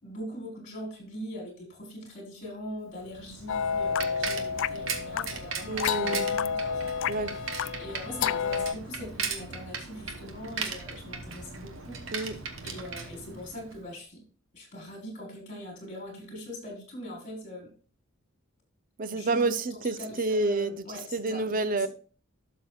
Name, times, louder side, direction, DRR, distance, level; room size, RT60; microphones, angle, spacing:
voice 1, 0.0-6.9 7.8-12.0 12.6-14.2 14.5-17.7 19.1-19.5 20.0-21.9, left 1 dB, 35° left, 4.0 m, -42 dB
Bicycle, 3.0-13.9, right 5 dB, 65° right, 1.1 m, -38 dB
sound 1, 3.5-8.7, left 7 dB, 60° left, 0.3 m, -30 dB
voice 2, 5.7-6.3 7.1-7.4 12.1-12.4 19.0-20.8 21.1-21.9, right 3 dB, 40° right, 0.5 m, -29 dB
12.0 x 6.7 x 2.4 m
head